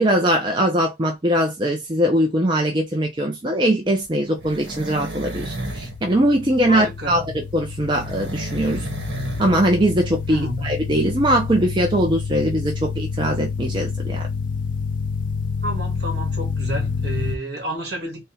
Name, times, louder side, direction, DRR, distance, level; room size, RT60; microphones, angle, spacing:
voice 1, 0.0-8.9 9.4-14.3, right 1 dB, 25° right, 0.6 m, -21 dB
sound 1, 4.0-6.0 7.9-9.6 9.9-10.0, right 1 dB, 85° right, 1.2 m, -32 dB
sound 2, 5.2-17.4, left 5 dB, 45° left, 0.4 m, -28 dB
voice 2, 6.6-7.2 10.3-10.7 15.6-18.2, right 1 dB, 65° right, 1.7 m, -30 dB
3.4 x 2.2 x 4.2 m
head